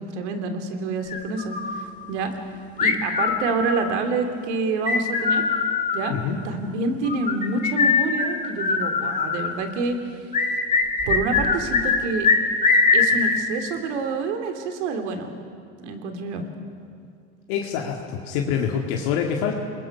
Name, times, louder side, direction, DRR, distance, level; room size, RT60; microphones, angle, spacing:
voice 1, 0.0-2.3 2.8-5.4 5.9-6.2 6.4-10.0 11.1-12.3 12.9-15.3 15.8-16.4, right 3 dB, 90° right, 6 dB, 2.8 m, -27 dB
sound 1, 1.1-1.8 2.8-3.9 4.9-6.1 7.0-9.5 10.3-12.0 12.2-13.4, left 4 dB, 20° left, 2.1 m, -21 dB
voice 2, 17.5-19.6, left 7 dB, 65° left, 1 dB, 2.1 m, -26 dB
28.5 x 20.5 x 5.9 m, 2.2 s
supercardioid pair, 135°, 34 cm